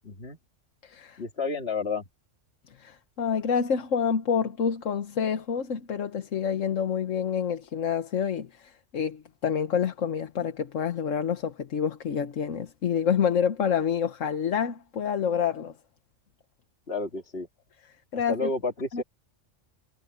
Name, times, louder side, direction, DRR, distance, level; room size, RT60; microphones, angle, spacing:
voice 1, 0.0-0.4 1.2-2.0 16.9-17.5 18.1-19.0, left 3 dB, 55° left, 2.7 m, -31 dB
voice 2, 0.8-1.2 2.8-15.7 18.1-18.3 18.9-19.0, left 7 dB, 85° left, 1.5 m, -28 dB
omnidirectional pair, 1.3 m